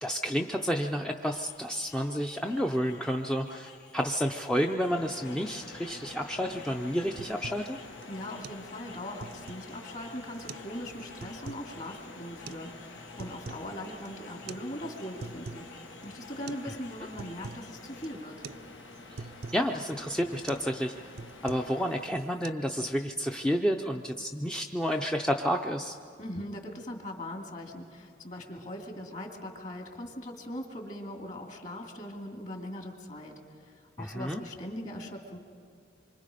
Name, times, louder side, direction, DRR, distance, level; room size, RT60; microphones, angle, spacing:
voice 1, 0.0-7.8 16.6-16.7 19.2-19.3 19.5-20.9 21.4-26.0 34.0-34.4, equal, 5° left, 2 dB, 0.5 m, -30 dB
sound 1, 1.2-18.1, left 4 dB, 70° left, 2.8 m, -54 dB
sound 2, 4.9-22.1, left 2 dB, 90° left, 1.6 m, -48 dB
sound 3, 6.5-6.6 7.0-7.7 8.0-8.1 8.4-8.6 9.0-9.8 10.3-10.7 11.0-11.7 12.5-12.6 13.0-13.7 14.0-14.1 14.5-14.7 15.0-15.7 16.0-16.1 16.5-16.7 17.0-17.7 18.0-18.2 18.4-18.6 18.9-19.6 20.0-20.2 20.5-20.7 21.0-21.8 22.1-22.5, right 4 dB, 55° right, 0.5 m, -44 dB
voice 2, 8.1-15.7 16.0-18.4 26.2-33.3 33.7-35.4, left 1 dB, 40° left, 2 dB, 2.5 m, -40 dB
26.5 x 24.5 x 5.1 m, 2.2 s
head